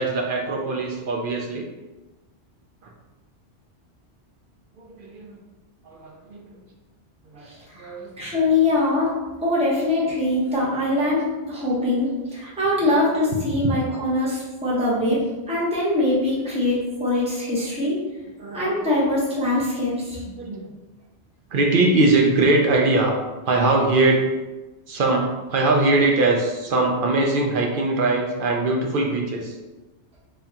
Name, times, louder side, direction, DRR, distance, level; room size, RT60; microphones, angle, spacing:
voice 1, 0.0-1.6 2.8-2.9 4.8-5.4 5.9-6.6 7.3-7.5 7.8-8.2 12.8-12.9 13.3-13.4 13.9-14.1 18.4-18.7 20.3-20.7 21.5-23.2 23.5-24.3 24.9-29.6, right 2 dB, 60° right, 1 dB, 0.6 m, -21 dB
voice 2, 7.5-9.1 9.4-18.0 18.5-20.2, left 2 dB, 5° right, -6 dB, 0.8 m, -23 dB
3.5 x 3.5 x 2.8 m, 1.2 s
omnidirectional pair, 1.2 m